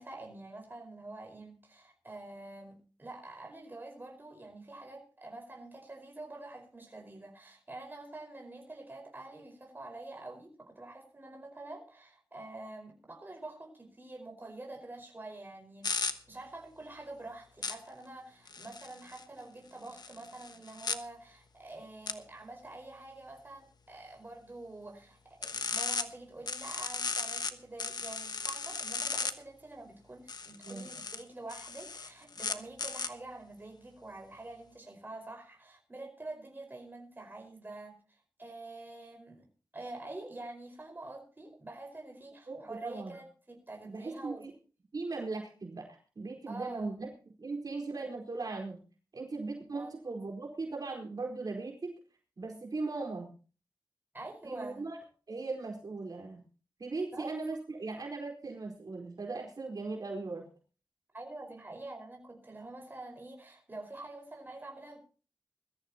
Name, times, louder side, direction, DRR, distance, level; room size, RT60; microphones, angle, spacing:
voice 1, 0.0-37.9 38.4-39.5 39.7-44.4 46.5-46.9 49.7-49.9 54.1-54.8 57.1-57.3 61.1-65.0, right 2 dB, 25° right, 1 dB, 5.0 m, -47 dB
sound 1, 15.8-16.1 17.6-17.7 18.5-19.2 19.9-21.0 22.1-22.2 25.4-26.0 26.5-27.5 27.8-29.3 30.3-31.2 31.5-33.1, left 4 dB, 60° left, 1.2 m, -35 dB
voice 2, 42.5-43.2 43.9-44.5 44.9-47.1 47.4-48.8 49.1-52.0 52.4-53.3 54.4-55.0 55.3-56.4 56.8-60.5, right 3 dB, 55° right, 1 dB, 4.4 m, -38 dB
21.5 x 13.5 x 2.9 m, 0.37 s
wide cardioid pair, 120°, 8 cm